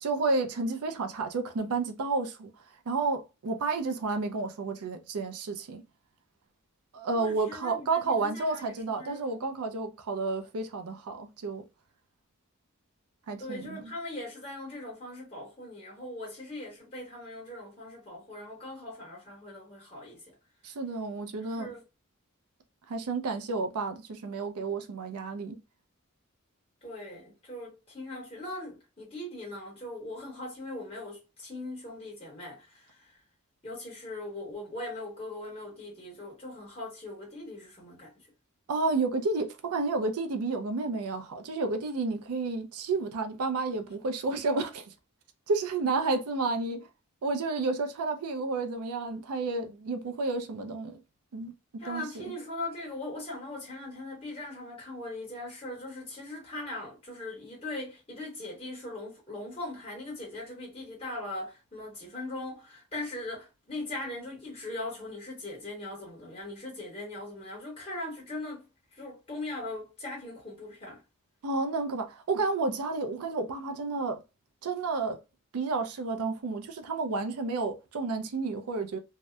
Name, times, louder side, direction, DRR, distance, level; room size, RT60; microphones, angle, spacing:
voice 1, 0.0-2.5 2.9-5.8 6.9-11.6 13.3-13.9 20.6-21.7 22.9-25.6 38.7-44.9 45.5-46.9 47.2-51.0 51.3-51.5 51.9-52.3 71.4-74.2 74.6-75.2 75.5-79.0, right 3 dB, 85° right, 0.4 m, -31 dB
voice 2, 7.1-9.5 13.4-20.4 21.5-21.8 26.8-33.2 33.6-38.1 51.8-68.6 68.9-71.0, left 2 dB, 25° left, 1.2 m, -40 dB
2.7 x 2.1 x 2.2 m
head